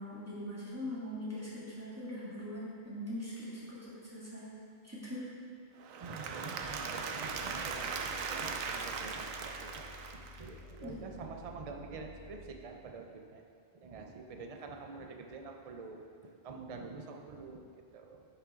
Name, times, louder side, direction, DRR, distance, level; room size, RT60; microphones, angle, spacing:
voice 1, 0.0-4.5 4.8-5.2 10.8-11.0, left 1 dB, 10° right, -9 dB, 2.2 m, -41 dB
Applause / Crowd, 5.8-10.8, right 5 dB, 85° right, 1.1 m, -39 dB
voice 2, 6.0-13.4 13.7-18.3, right 4 dB, 35° right, 3 dB, 0.6 m, -47 dB
sound 1, 6.6-12.8, left 3 dB, 65° left, 0.5 m, -54 dB
10.5 x 6.7 x 3.8 m, 2.3 s
omnidirectional pair, 1.4 m